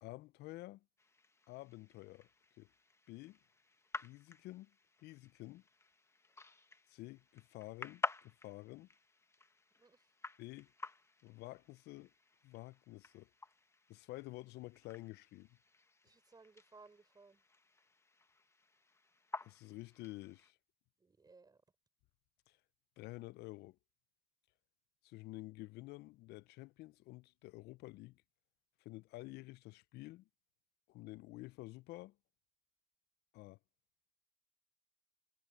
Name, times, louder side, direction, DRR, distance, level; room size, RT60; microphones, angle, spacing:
voice 1, 0.0-0.8 1.5-2.3 2.6-2.7 3.1-3.4 4.0-5.6 6.9-8.9 10.4-10.7 11.2-12.1 12.4-13.3 13.9-15.5 19.4-20.6 22.5-22.6 23.0-23.8 25.0-28.2 28.8-30.3 30.9-32.2 33.3-33.6, left 19 dB, 75° left, 0.4 m, -50 dB
sound 1, 1.0-20.5, left 3 dB, 15° left, 1.2 m, -50 dB
voice 2, 9.8-10.1 16.0-17.4 21.0-21.6, right 4 dB, 25° right, 5.1 m, -61 dB
cardioid pair, 110°, 17 cm